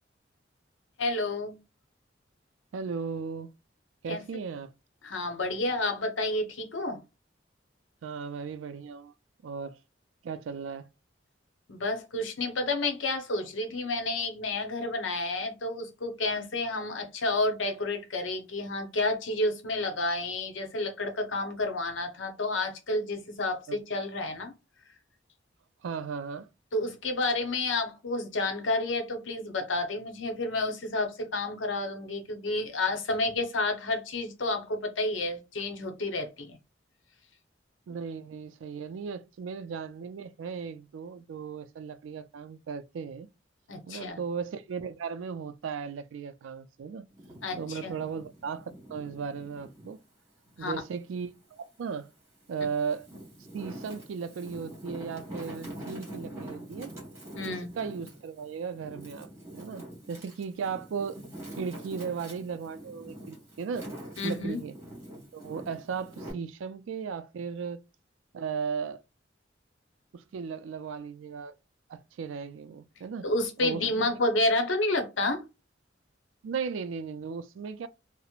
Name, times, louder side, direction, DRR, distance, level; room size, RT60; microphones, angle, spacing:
voice 1, 1.0-1.6 4.1-4.2 5.0-7.0 11.7-24.5 26.7-36.6 43.7-44.2 47.4-48.0 50.6-50.7 57.3-57.7 64.2-64.6 73.2-75.4, left 2 dB, 80° left, 0.7 m, -30 dB
voice 2, 2.7-3.5 4.0-4.7 8.0-9.1 9.4-9.8 10.2-10.9 23.7-23.8 25.8-26.5 37.9-43.3 43.9-47.1 47.6-50.0 50.6-52.1 52.5-53.1 53.5-56.9 57.4-59.3 59.5-61.2 61.5-63.9 64.2-64.7 65.3-67.8 68.3-69.0 70.1-71.5 71.9-73.3 73.6-74.1 76.4-77.9, right 6 dB, 85° right, 0.3 m, -36 dB
Wind, 47.1-49.9 50.5-51.7 52.4-66.3, right 1 dB, 15° right, 1.3 m, -45 dB
2.9 x 2.0 x 2.3 m
head